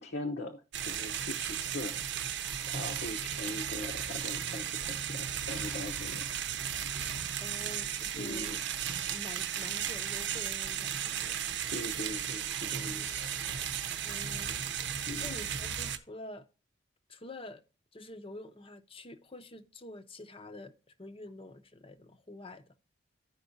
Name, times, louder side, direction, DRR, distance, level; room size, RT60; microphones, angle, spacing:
voice 1, 0.0-2.0 2.7-6.3 8.1-8.6 11.7-13.7 15.1-15.3, left 2 dB, 60° left, 0.8 m, -41 dB
sound 1, 0.7-16.0, right 9 dB, 60° right, 0.7 m, -35 dB
voice 2, 7.4-8.6 9.1-11.4 12.8-13.2 14.0-14.5 15.2-16.5 17.1-17.6 17.9-20.7 21.0-22.6, left 1 dB, 30° left, 0.7 m, -47 dB
14.5 x 5.3 x 2.6 m
head